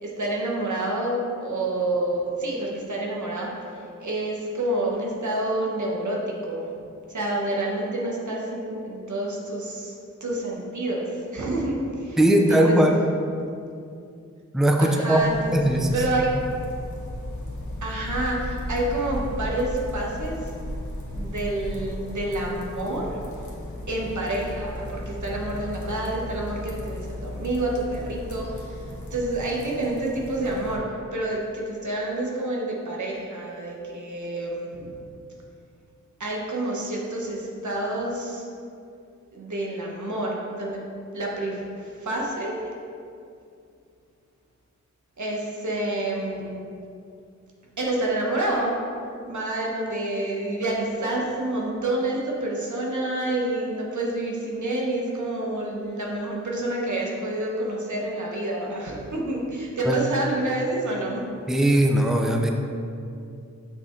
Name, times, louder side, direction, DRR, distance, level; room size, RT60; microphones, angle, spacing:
voice 1, 0.0-6.7 7.1-9.9 10.2-12.8 14.8-15.6 15.9-16.3 17.8-20.5 21.1-23.2 23.9-30.9 31.1-34.9 36.2-38.4 39.3-40.9 41.1-42.6 45.2-46.6 47.8-48.7 49.3-61.3, right 1 dB, 75° right, -2 dB, 1.3 m, -28 dB
voice 2, 12.2-13.0 14.5-15.2 15.5-16.0 59.9-60.0 61.5-62.5, right 1 dB, ahead, 2 dB, 0.6 m, -19 dB
sound 1, 15.2-30.8, left 1 dB, 70° left, 1.3 m, -35 dB
6.5 x 6.1 x 4.0 m, 2.5 s
wide cardioid pair, 75°, 30 cm